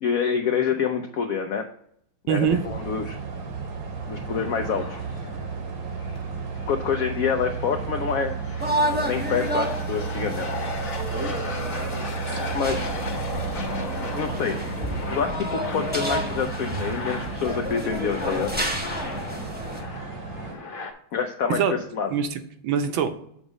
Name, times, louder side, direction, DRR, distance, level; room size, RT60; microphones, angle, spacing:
voice 1, 0.0-1.7 2.3-3.2 4.1-5.0 6.6-8.4 9.1-10.5 12.5-12.9 14.2-14.7 15.1-18.5 21.1-21.6 21.9-22.1, left 6 dB, 80° left, 5 dB, 0.7 m, -27 dB
voice 2, 2.3-2.7 21.5-21.7 22.1-23.1, right 7 dB, 80° right, 7 dB, 1.6 m, -23 dB
sound 1, 2.4-20.5, right 5 dB, 55° right, 1.2 m, -33 dB
sound 2, 4.0-20.9, left 2 dB, 50° left, 1.4 m, -36 dB
sound 3, 8.6-19.8, equal, 10° right, 0.7 m, -31 dB
7.1 x 3.5 x 6.2 m, 0.69 s
omnidirectional pair, 2.2 m